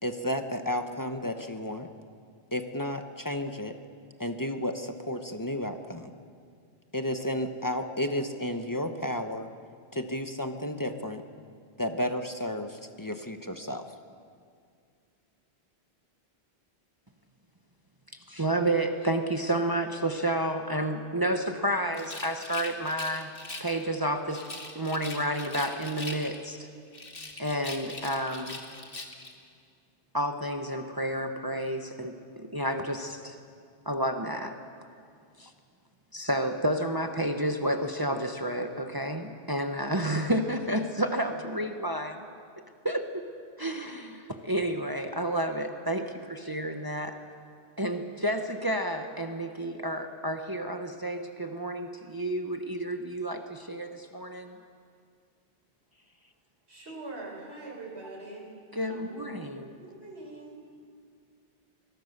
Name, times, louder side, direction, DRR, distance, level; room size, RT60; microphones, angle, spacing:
voice 1, 0.0-1.9 2.5-3.7 4.2-6.1 6.9-9.5 9.9-11.2 11.8-13.8, left 1 dB, 20° left, 6 dB, 1.1 m, -32 dB
voice 2, 18.3-23.3 23.6-24.5 24.7-26.7 27.4-28.6 30.1-33.4 33.9-34.6 35.4-35.5 36.1-42.2 42.8-43.2 43.6-47.2 47.8-54.5 58.7-59.7, right 1 dB, 20° right, 5 dB, 1.1 m, -30 dB
Rattle, 21.9-23.8 24.3-26.6 26.9-29.4, left 2 dB, 60° left, 2.1 m, -41 dB
voice 3, 56.7-58.5 58.8-59.3 59.7-60.7, right 2 dB, 85° right, -1 dB, 5.2 m, -43 dB
24.5 x 21.5 x 6.7 m, 2.2 s
omnidirectional pair, 1.1 m